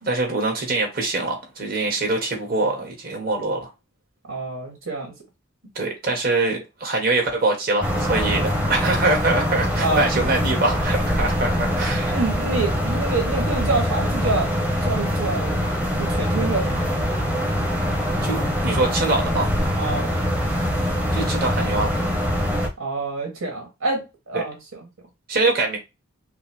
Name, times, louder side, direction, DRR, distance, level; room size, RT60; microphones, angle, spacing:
voice 1, 0.0-3.7 5.7-12.2 18.2-19.5 21.1-21.9 24.3-24.4 25.3-25.8, right 2 dB, 45° right, 1.5 m, -24 dB
voice 2, 4.3-5.1 9.8-10.1 12.1-15.7 16.0-16.8 19.8-20.1 22.8-24.9, right 3 dB, 80° right, 1.6 m, -27 dB
sound 1, 7.8-22.7, equal, 5° right, 0.8 m, -23 dB
5.8 x 2.0 x 3.4 m
head